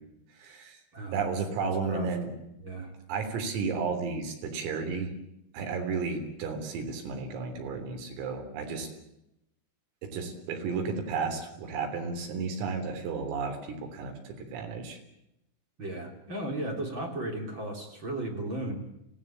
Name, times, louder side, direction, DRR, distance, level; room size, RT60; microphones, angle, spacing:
voice 1, 0.4-0.8 1.1-2.3 3.1-5.1 5.5-8.9 10.0-15.0, right 5 dB, 80° right, 5 dB, 6.2 m, -33 dB
voice 2, 0.9-1.3 1.6-2.1 2.6-2.9 15.8-18.8, right 1 dB, 25° right, 1 dB, 3.6 m, -35 dB
25.0 x 17.5 x 8.7 m, 0.85 s
omnidirectional pair, 5.9 m